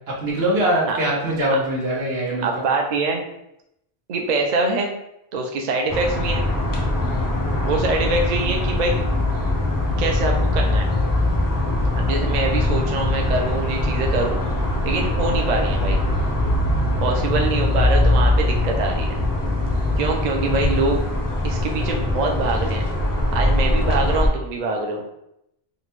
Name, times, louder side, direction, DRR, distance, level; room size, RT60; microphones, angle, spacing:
voice 1, 0.2-2.5, right 1 dB, 80° right, -4 dB, 1.3 m, -22 dB
voice 2, 2.4-3.2 4.1-4.9 5.3-6.4 7.6-9.0 10.0-10.9 12.0-14.4 14.8-16.0 17.0-19.2 20.0-21.0 21.4-22.8 23.3-25.0, right 3 dB, 55° right, 1 dB, 0.5 m, -24 dB
sound 1, 5.9-24.3, left 1 dB, 25° left, 0.5 m, -21 dB
3.8 x 2.2 x 3.0 m, 0.80 s
omnidirectional pair, 1.0 m